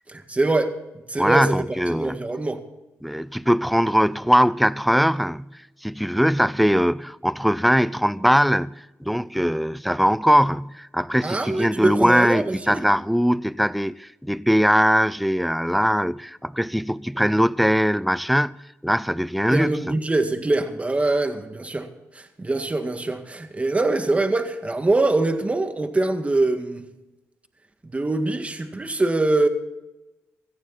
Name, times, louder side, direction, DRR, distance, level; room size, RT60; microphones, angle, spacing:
voice 1, 0.1-0.7 1.1-2.6 11.2-12.9 19.5-21.9 22.1-26.9 27.8-29.5, right 2 dB, 25° right, 1.9 m, -23 dB
voice 2, 1.2-2.2 3.0-5.5 5.8-19.7, equal, ahead, 0.5 m, -21 dB
17.5 x 14.0 x 4.1 m
cardioid pair, 70°, 5 cm